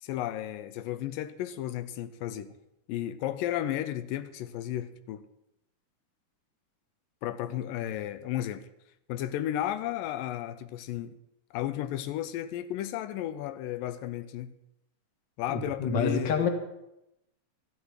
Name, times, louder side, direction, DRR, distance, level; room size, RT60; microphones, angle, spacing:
voice 1, 0.0-2.5 2.9-5.2 7.2-8.7 9.1-11.2 11.5-14.5 15.4-16.5, left 12 dB, 85° left, 2.3 m, -33 dB
voice 2, 15.5-16.5, left 5 dB, 45° left, 1.8 m, -27 dB
13.0 x 10.5 x 6.4 m
omnidirectional pair, 3.9 m